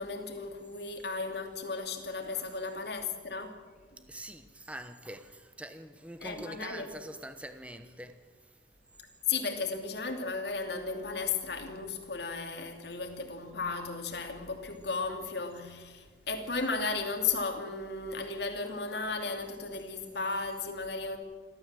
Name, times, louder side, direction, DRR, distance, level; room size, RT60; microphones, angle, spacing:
voice 1, 0.0-3.5 6.2-6.9 9.3-21.2, left 4 dB, 65° left, 2.8 m, -35 dB
voice 2, 2.3-2.6 4.1-8.1, right 1 dB, 5° right, 1.0 m, -44 dB
28.0 x 13.0 x 7.7 m
head